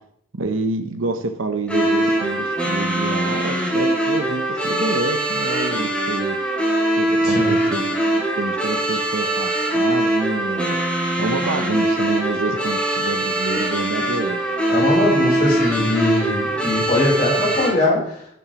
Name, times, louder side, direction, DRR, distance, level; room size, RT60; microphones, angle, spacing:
voice 1, 0.3-6.4 7.0-7.8 8.1-10.8 11.2-14.4, right 2 dB, 75° right, 7 dB, 0.8 m, -27 dB
sound 1, 1.7-17.7, right 1 dB, 5° left, 2.4 m, -22 dB
voice 2, 7.2-7.6 14.7-18.3, left 2 dB, 45° left, -4 dB, 3.8 m, -21 dB
10.5 x 9.0 x 3.0 m, 0.72 s
head